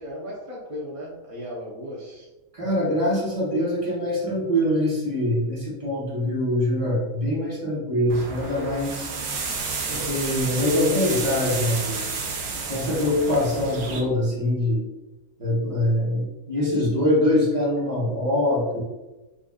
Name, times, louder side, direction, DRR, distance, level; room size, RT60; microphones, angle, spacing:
voice 1, 0.0-2.3, equal, 45° right, -6 dB, 0.4 m, -36 dB
voice 2, 2.5-9.1 9.9-12.1 12.7-14.8 15.4-18.8, left 1 dB, 25° right, -6 dB, 1.1 m, -23 dB
sound 1, 8.1-14.0, right 4 dB, 75° right, 1.2 m, -31 dB
4.9 x 2.6 x 2.3 m, 1.1 s
omnidirectional pair, 1.6 m